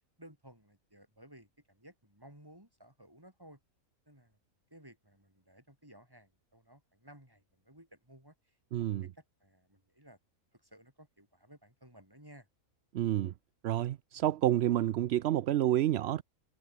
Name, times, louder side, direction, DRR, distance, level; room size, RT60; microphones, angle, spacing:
voice 1, 0.2-3.6 4.1-4.4 4.7-10.2 10.5-12.5, right 1 dB, 15° right, 6.3 m, -57 dB
voice 2, 8.7-9.0 12.9-13.3 13.6-16.2, right 12 dB, 65° right, 0.7 m, -29 dB
omnidirectional pair, 1.5 m